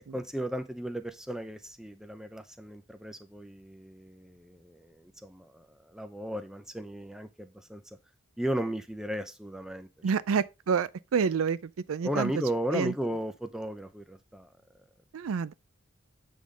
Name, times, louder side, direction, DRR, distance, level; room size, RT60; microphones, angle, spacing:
voice 1, 0.1-7.8 8.4-9.9 12.0-14.5, right 1 dB, 5° right, 0.6 m, -35 dB
voice 2, 10.0-11.6 11.9-12.3 12.7-12.9 15.1-15.5, right 6 dB, 90° right, 0.4 m, -28 dB
8.4 x 3.8 x 5.0 m
head